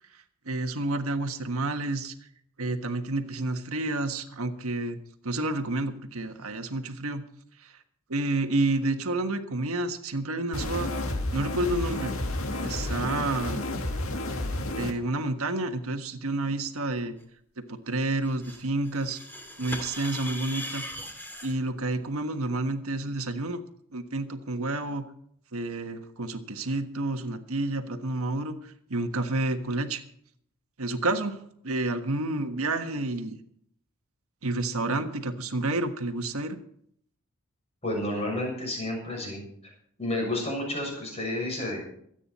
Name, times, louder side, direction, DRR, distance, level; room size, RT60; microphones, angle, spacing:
voice 1, 0.1-2.1 2.6-5.0 5.2-7.2 7.6-7.7 8.1-10.9 11.3-12.1 12.6-13.6 14.7-17.2 17.6-19.2 19.6-20.8 21.4-23.6 23.9-25.0 25.5-30.0 30.8-31.4 31.6-33.4 34.4-36.6, right 2 dB, 80° right, 6 dB, 1.5 m, -29 dB
sound 1, 10.5-14.9, left 1 dB, 75° left, 1.9 m, -31 dB
sound 2, 18.3-21.5, left 1 dB, 10° left, 2.6 m, -39 dB
voice 2, 37.8-39.4 40.0-41.8, left 1 dB, 30° left, -1 dB, 7.0 m, -30 dB
24.5 x 9.2 x 4.2 m, 0.67 s
head